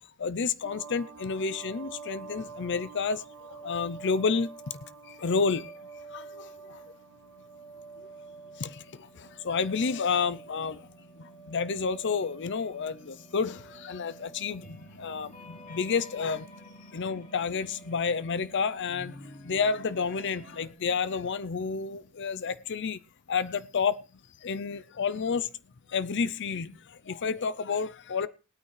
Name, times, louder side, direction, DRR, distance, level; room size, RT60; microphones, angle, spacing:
voice 1, 0.2-3.2 3.5-4.5 5.0-6.8 8.6-10.9 11.2-16.5 16.9-23.0 23.3-24.0 24.4-25.5 25.9-28.3, left 5 dB, 55° left, 0.6 m, -30 dB
sound 1, 0.6-18.7, right 4 dB, 65° right, 1.5 m, -49 dB
sound 2, 6.5-20.7, equal, 40° left, 2.7 m, -52 dB
20.0 x 9.3 x 3.2 m
head